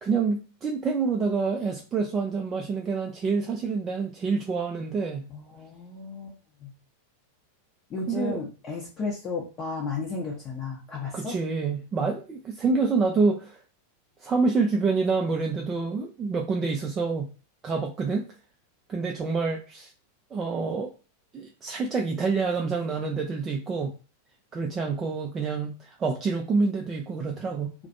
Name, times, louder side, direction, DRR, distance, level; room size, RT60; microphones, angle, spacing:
voice 1, 0.0-5.2 8.1-8.4 11.1-13.6 14.2-17.3 17.6-18.3 18.9-19.9 20.3-20.9 21.3-23.9 24.5-27.7, right 4 dB, 25° right, 1 dB, 0.3 m, -27 dB
voice 2, 5.3-6.3 6.6-6.7 7.9-11.4, left 4 dB, 30° left, -4 dB, 0.6 m, -33 dB
2.4 x 2.1 x 2.5 m, 0.34 s
figure-of-eight pair, 90°, 0 cm